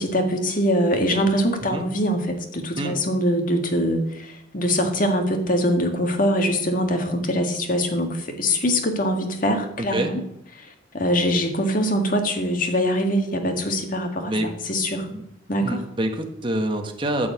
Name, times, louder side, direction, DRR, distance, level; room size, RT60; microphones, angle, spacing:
voice 1, 0.0-10.2 10.9-14.3 14.7-15.1 15.5-15.9, equal, 50° left, 4 dB, 1.9 m, -23 dB
voice 2, 15.6-17.3, right 1 dB, 30° right, 4 dB, 1.4 m, -26 dB
14.0 x 4.8 x 8.4 m, 0.82 s
head